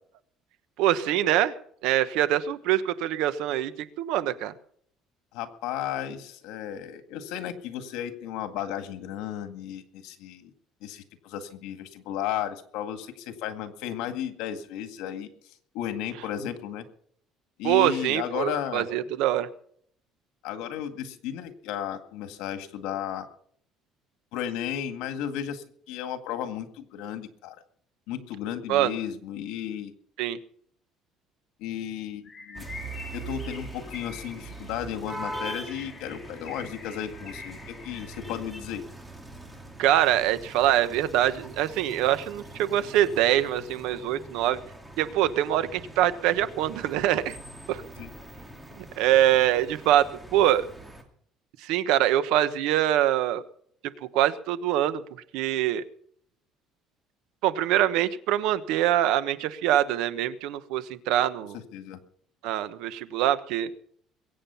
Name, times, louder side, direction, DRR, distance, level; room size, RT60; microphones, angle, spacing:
voice 1, 0.8-1.5 1.8-3.7 4.0-4.5 17.6-19.5 28.7-29.0 30.2-30.4 39.8-44.6 45.0-47.4 47.7-47.8 48.8-50.6 51.6-53.4 54.1-55.0 55.3-55.8 57.4-61.6 62.4-63.7, right 12 dB, 75° right, 13 dB, 1.1 m, -24 dB
voice 2, 5.3-10.5 10.8-15.3 15.7-16.8 17.6-18.9 20.4-23.3 24.3-27.6 28.1-29.9 31.6-32.7 33.1-38.8 48.0-48.1 61.5-62.0, left 10 dB, 85° left, 8 dB, 1.9 m, -34 dB
Bird, 32.2-38.6, left 4 dB, 25° left, 5.0 m, -45 dB
sound 1, 32.5-51.0, right 2 dB, 5° right, 2.3 m, -42 dB
22.0 x 8.9 x 5.7 m, 0.63 s
cardioid pair, 165°, 0 cm